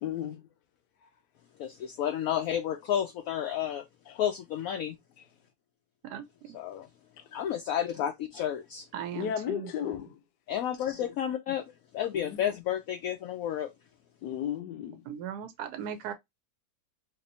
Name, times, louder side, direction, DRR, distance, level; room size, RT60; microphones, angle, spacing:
voice 1, 0.0-0.5 4.1-4.2 7.2-7.3 9.1-10.2 12.1-12.4 14.2-15.0, left 10 dB, 85° left, 1.3 m, -34 dB
voice 2, 1.6-3.8 4.2-5.0 6.5-6.9 7.3-8.9 10.5-13.7, left 10 dB, 70° left, 0.9 m, -31 dB
voice 3, 6.0-6.6 8.9-10.0 15.0-16.1, right 9 dB, 75° right, 1.1 m, -38 dB
4.1 x 2.8 x 2.6 m
omnidirectional pair, 1.8 m